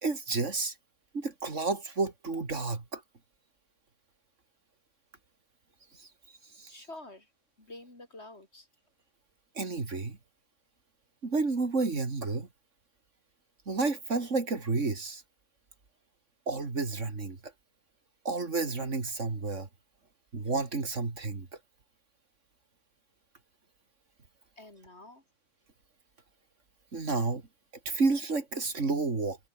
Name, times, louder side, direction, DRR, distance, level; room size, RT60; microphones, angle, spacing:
voice 1, 0.0-0.7 1.1-3.0 6.0-6.1 6.6-6.7 9.5-10.2 11.2-12.5 13.7-15.2 16.5-17.4 18.2-19.7 20.3-21.5 26.9-27.4 27.8-29.4, right 3 dB, 65° right, 3.1 m, -30 dB
voice 2, 6.7-7.3 7.6-8.7 24.6-25.2, left 2 dB, 55° left, 5.3 m, -48 dB
omnidirectional pair, 1.3 m